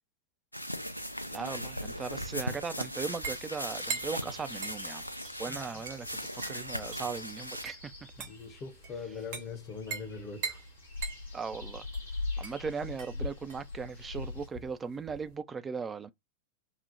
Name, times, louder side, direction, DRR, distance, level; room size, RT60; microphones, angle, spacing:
sound 1, 0.5-7.6, equal, 90° left, 0.4 m, -38 dB
sound 2, 0.7-14.5, left 3 dB, 70° left, 1.2 m, -44 dB
voice 1, 1.3-5.0 5.4-7.9 11.3-11.9 12.4-16.1, right 5 dB, 15° right, 0.3 m, -38 dB
sound 3, 2.2-15.4, right 5 dB, 50° right, 0.9 m, -43 dB
voice 2, 8.2-10.6, left 5 dB, 30° left, 0.7 m, -42 dB
3.0 x 2.0 x 2.5 m
figure-of-eight pair, 90°, 0 cm